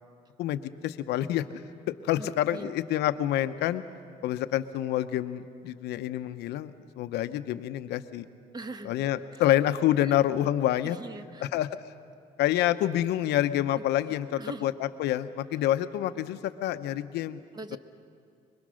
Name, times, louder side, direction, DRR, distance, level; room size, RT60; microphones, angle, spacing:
voice 1, 0.4-1.4 1.9-3.8 4.2-8.3 8.8-11.0 11.4-11.7 12.4-17.4 17.7-17.8, left 12 dB, 80° left, 11 dB, 0.9 m, -27 dB
voice 2, 2.2-2.7 8.5-9.1 9.3-9.4 10.0-10.2 10.8-11.5 13.7-13.8 14.4-14.7 17.5-17.8, right 2 dB, 25° right, 8 dB, 1.2 m, -42 dB
25.0 x 22.5 x 6.4 m, 2.3 s
cardioid pair, 110°, 17 cm